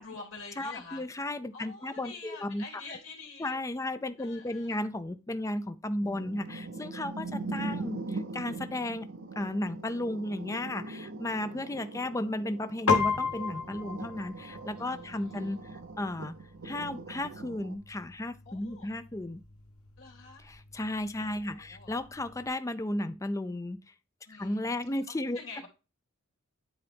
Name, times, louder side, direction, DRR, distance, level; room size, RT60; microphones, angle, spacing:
voice 1, 0.0-1.0 1.5-3.6 4.2-4.8 14.8-15.6 18.4-18.9 20.0-20.4 21.2-21.9 24.3-24.7 25.1-25.7, left 4 dB, 60° left, 2.9 m, -47 dB
voice 2, 0.6-2.6 3.4-8.0 8.3-9.0 9.4-15.6 16.0-16.3 16.7-19.4 20.7-23.8 24.4-25.4, left 1 dB, 15° left, 0.4 m, -34 dB
sound 1, 6.0-17.8, right 3 dB, 55° right, 0.7 m, -41 dB
Piano, 12.9-22.5, left 5 dB, 85° left, 1.3 m, -36 dB
9.5 x 3.9 x 3.5 m
head